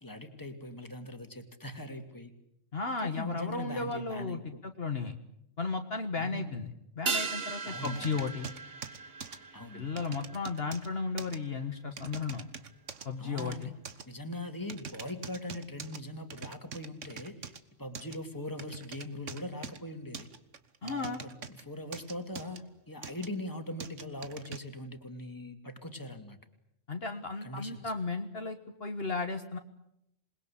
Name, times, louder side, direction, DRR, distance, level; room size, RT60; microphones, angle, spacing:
voice 1, 0.0-2.3 3.0-4.4 6.2-6.6 7.6-8.2 9.5-9.9 13.2-13.7 14.1-20.3 20.8-26.4 27.4-27.9, left 1 dB, 15° left, 7 dB, 2.6 m, -41 dB
voice 2, 2.7-5.1 5.6-6.7 7.0-8.5 9.7-12.5 13.1-13.7 20.8-21.2 26.9-29.6, left 4 dB, 55° left, 6 dB, 1.7 m, -34 dB
sound 1, 7.1-11.8 12.0-12.1, right 5 dB, 55° right, 1.4 m, -38 dB
sound 2, 7.8-9.4 10.0-10.9 11.2-11.4 12.0-13.1 13.4-14.0 14.7-16.0 16.3-17.6 17.9-18.2 18.6-19.8 20.1-21.6 21.9-22.6 23.0-23.3 23.8-24.6, right 6 dB, 90° right, 1.8 m, -43 dB
27.5 x 21.0 x 8.6 m, 0.79 s
omnidirectional pair, 1.2 m